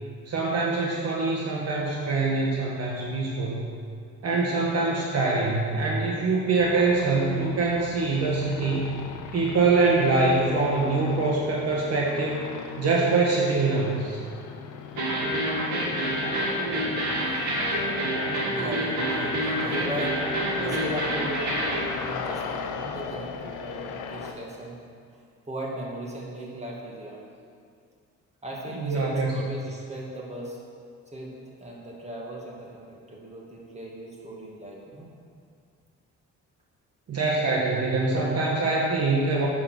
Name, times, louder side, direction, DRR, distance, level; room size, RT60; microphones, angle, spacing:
voice 1, 0.3-3.7 4.2-9.0 9.3-12.5 12.8-14.2 28.8-29.3 37.1-39.5, right 3 dB, 55° right, -2 dB, 1.4 m, -24 dB
sound 1, 6.6-24.3, left 6 dB, 85° left, 0.9 m, -38 dB
sound 2, 15.0-21.8, equal, 75° right, 2.6 m, -27 dB
voice 2, 18.5-20.2 20.6-21.6 21.9-24.8 25.1-27.2 28.4-30.6 31.1-35.1, right 1 dB, 20° right, -3 dB, 2.3 m, -37 dB
8.5 x 7.0 x 6.4 m, 2.2 s
cardioid pair, 90°, 30 cm